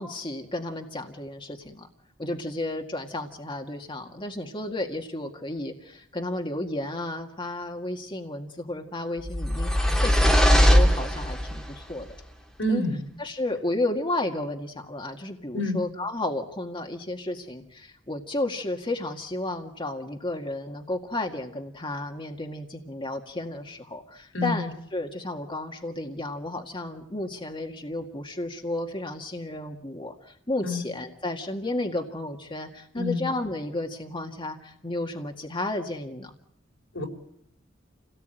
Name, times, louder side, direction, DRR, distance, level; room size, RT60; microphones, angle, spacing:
voice 1, 0.0-1.9 2.2-12.1 12.7-12.9 13.2-36.3, left 2 dB, 25° left, 3 dB, 1.9 m, -32 dB
sound 1, 9.3-11.7, equal, ahead, 3.1 m, -20 dB
voice 2, 12.6-13.0 15.5-15.8 24.3-24.6 30.6-30.8 33.0-33.2 36.9-37.0, left 1 dB, 70° left, 3 dB, 4.7 m, -27 dB
28.5 x 18.5 x 9.1 m, 0.75 s
head